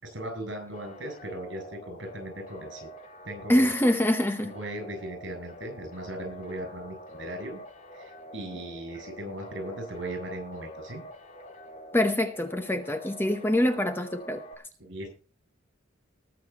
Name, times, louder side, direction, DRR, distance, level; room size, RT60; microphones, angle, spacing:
voice 1, 0.0-2.9 3.2-3.7 4.4-7.6 8.0-11.0 14.8-15.1, right 1 dB, 60° right, 7.4 m, -38 dB
sound 1, 0.7-14.6, equal, 35° left, 1.6 m, -46 dB
voice 2, 3.5-4.5 11.9-14.4, left 1 dB, 10° left, 0.8 m, -25 dB
19.5 x 6.8 x 4.1 m
head